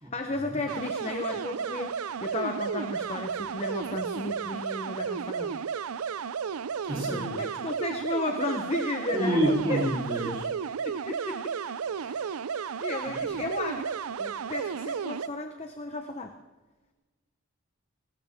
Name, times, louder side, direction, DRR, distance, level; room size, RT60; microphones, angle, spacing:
voice 1, 0.1-5.6 6.9-9.8 10.2-10.3 10.8-11.6 12.0-12.3 12.8-16.4, left 2 dB, 30° left, 5 dB, 0.9 m, -34 dB
sound 1, 0.7-15.3, right 6 dB, 85° right, 0.5 m, -33 dB
voice 2, 6.8-7.4 9.1-10.5 13.1-13.2, equal, 20° right, -3 dB, 3.6 m, -28 dB
20.0 x 19.5 x 3.6 m, 1.2 s
head